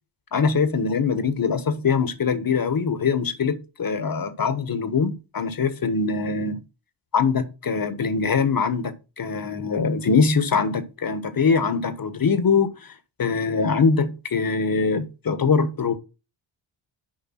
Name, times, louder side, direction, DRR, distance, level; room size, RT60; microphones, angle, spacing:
voice 1, 0.3-6.6 7.1-12.9 13.2-16.0, left 5 dB, 45° left, 1.4 m, -23 dB
6.6 x 5.1 x 5.8 m
cardioid pair, 60°, 49 cm